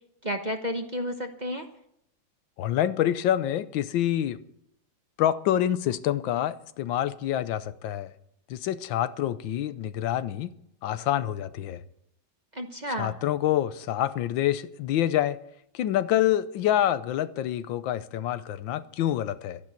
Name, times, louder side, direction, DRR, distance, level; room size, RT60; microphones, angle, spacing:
voice 1, 0.2-1.7 12.5-13.2, equal, 30° right, 0.9 m, -31 dB
voice 2, 2.6-4.4 5.2-8.1 8.5-10.5 10.8-11.8 13.0-15.4 15.7-19.6, left 12 dB, 85° left, 1.5 m, -27 dB
13.0 x 10.5 x 8.4 m
omnidirectional pair, 2.0 m